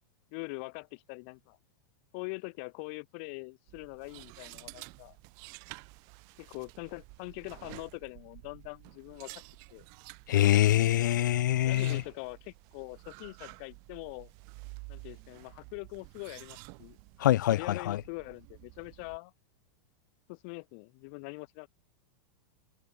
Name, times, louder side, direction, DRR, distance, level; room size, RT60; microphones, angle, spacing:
voice 1, 0.3-1.6 2.1-5.2 6.4-9.3 9.7-9.9 11.6-14.3 14.9-17.0 17.5-19.3 20.3-21.7, left 34 dB, 40° left, 3.0 m, -43 dB
sound 1, 3.7-19.2, right 36 dB, 35° right, 4.2 m, -51 dB
voice 2, 10.3-12.0 17.2-17.6 17.9-18.0, left 13 dB, 80° left, 0.6 m, -24 dB
supercardioid pair, 175°, 10 cm